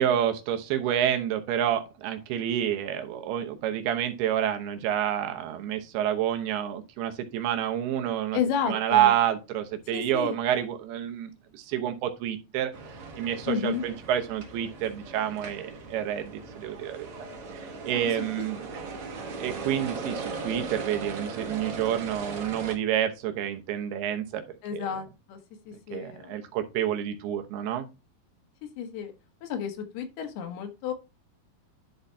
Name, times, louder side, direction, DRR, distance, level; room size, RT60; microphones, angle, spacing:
voice 1, 0.0-8.4 8.7-12.7 13.2-17.1 17.5-18.7 19.4-24.4 24.7-24.9 25.9-27.9, right 10 dB, 85° right, 6 dB, 3.0 m, -28 dB
voice 2, 8.3-9.1 9.9-10.4 13.5-13.8 24.6-25.4 25.7-26.4 28.8-29.1 29.4-30.9, left 7 dB, 85° left, 5 dB, 3.2 m, -31 dB
sound 1, 12.7-22.8, right 4 dB, 60° right, 1.5 m, -38 dB
11.0 x 4.2 x 3.3 m, 0.27 s
omnidirectional pair, 4.5 m